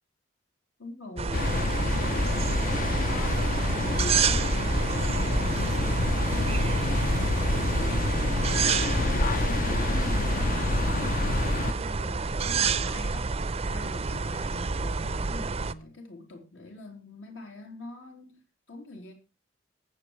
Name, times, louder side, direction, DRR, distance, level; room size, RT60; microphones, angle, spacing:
voice 1, 0.8-13.3 13.7-18.4 18.7-19.1, left 2 dB, 75° left, 3.7 m, -44 dB
sound 1, 1.2-15.7, right 4 dB, 30° right, 0.5 m, -29 dB
sound 2, 1.3-11.7, left 2 dB, 45° left, 0.7 m, -27 dB
21.5 x 8.1 x 3.2 m
head